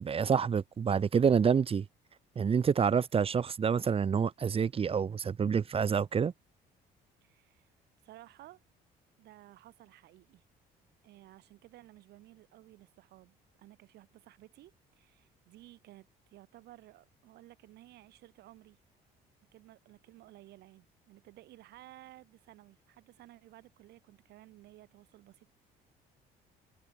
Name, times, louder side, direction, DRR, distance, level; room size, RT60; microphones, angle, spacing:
voice 1, 0.0-1.8 2.3-6.3, right 6 dB, 35° right, 1.4 m, -27 dB
voice 2, 7.2-7.7 8.0-8.6 9.2-10.4 11.0-18.8 19.5-25.5, right 16 dB, 75° right, 5.0 m, -56 dB
cardioid pair, 110°, 17 cm